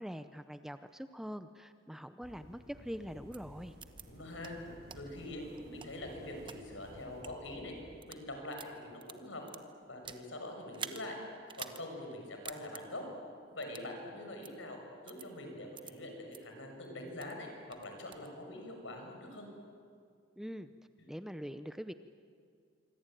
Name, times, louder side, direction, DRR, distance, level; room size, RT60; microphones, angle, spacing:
voice 1, 0.0-3.7 20.4-20.7 21.1-21.9, equal, ahead, 10 dB, 0.6 m, -43 dB
sound 1, 2.2-8.0, equal, 50° right, 7.8 m, -54 dB
sound 2, 3.3-3.4 3.8-4.0 4.4-4.5 4.9-5.0 5.6-6.6 7.1-7.3 7.9-8.2 8.5-10.3 10.7-11.0 11.5-11.8 12.1-12.2 12.5-12.8 13.6-13.9 14.4-14.5 15.1-15.3 15.8-15.9 16.3-16.4 16.8-17.4 17.7-18.3, right 7 dB, 25° right, 1.0 m, -46 dB
voice 2, 4.1-4.6 4.9-7.7 8.0-9.4 9.9-11.2 11.6-13.0 13.5-14.8 15.0-19.5, left 1 dB, 75° left, 3 dB, 6.5 m, -44 dB
26.0 x 24.5 x 9.1 m, 2.3 s
head